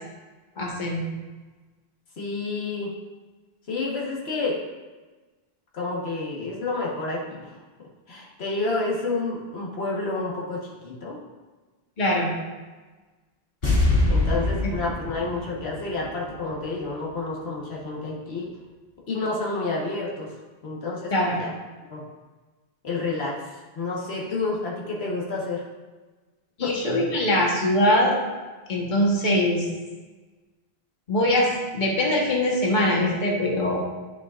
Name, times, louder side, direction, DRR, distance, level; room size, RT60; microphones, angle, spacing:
voice 1, 0.6-1.0 12.0-12.3 14.6-14.7 21.1-21.4 26.6-28.2 28.7-29.6 31.1-33.8, left 1 dB, 50° left, -3 dB, 1.4 m, -22 dB
voice 2, 2.2-2.9 3.7-4.6 5.7-7.5 8.1-11.2 14.1-18.5 19.1-20.3 20.6-21.5 21.9-22.0 22.8-25.6 26.6-26.7, left 3 dB, 85° left, -4 dB, 1.5 m, -29 dB
sound 1, 13.6-16.8 17.1-17.2, left 2 dB, 70° left, 2.1 m, -24 dB
11.5 x 5.0 x 2.5 m, 1.3 s
omnidirectional pair, 1.0 m